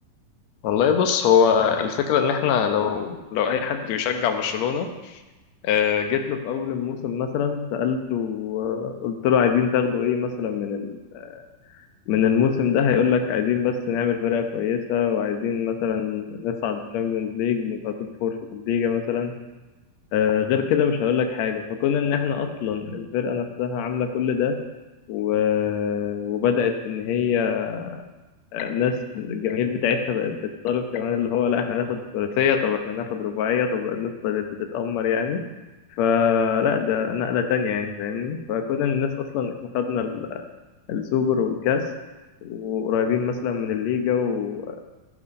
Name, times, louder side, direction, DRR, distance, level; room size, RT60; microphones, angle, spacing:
voice 1, 0.6-5.2 5.6-11.4 12.1-17.9 18.2-19.3 20.1-24.5 25.1-28.1 28.5-35.4 36.0-40.4 40.9-41.8 42.4-44.8, left 7 dB, 70° left, 5 dB, 1.7 m, -24 dB
16.0 x 5.7 x 5.3 m, 1.1 s
omnidirectional pair, 4.2 m